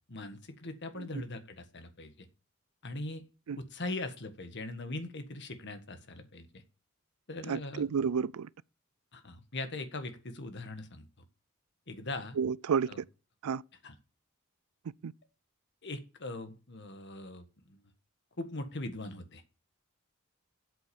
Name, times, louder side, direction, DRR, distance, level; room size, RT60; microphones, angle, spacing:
voice 1, 0.1-2.3 2.8-3.2 3.6-6.6 7.3-7.8 9.1-11.0 11.9-12.4 12.9-13.0 13.8-13.9 15.8-17.8 18.4-19.4, left 2 dB, 55° left, 1.6 m, -40 dB
voice 2, 7.5-8.5 12.4-13.0 13.4-13.6 15.0-15.1, right 6 dB, 90° right, 0.4 m, -31 dB
8.0 x 7.9 x 6.9 m
head